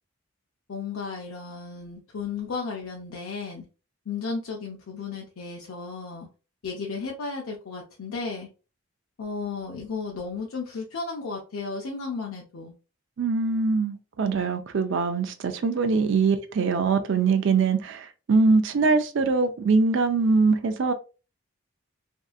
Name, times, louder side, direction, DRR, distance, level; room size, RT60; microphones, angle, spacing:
voice 1, 0.7-3.6 4.1-6.3 6.6-8.5 9.2-12.7, left 4 dB, 70° left, 0.5 m, -34 dB
voice 2, 13.2-18.0 18.3-20.9, right 4 dB, 55° right, 0.4 m, -22 dB
2.7 x 2.4 x 2.3 m
head